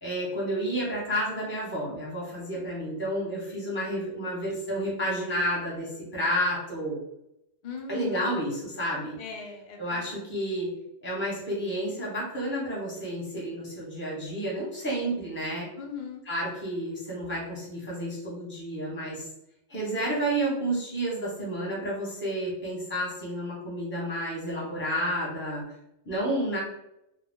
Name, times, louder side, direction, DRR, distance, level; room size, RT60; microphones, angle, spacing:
voice 1, 0.0-7.0 7.9-9.2 9.8-10.7 11.0-15.7 16.3-19.2 19.7-25.6 26.0-26.6, right 1 dB, 10° left, -5 dB, 0.9 m, -30 dB
voice 2, 7.6-8.3 9.2-10.2 15.8-16.2, left 6 dB, 85° left, 1 dB, 0.4 m, -39 dB
2.3 x 2.2 x 3.5 m, 0.82 s
omnidirectional pair, 1.4 m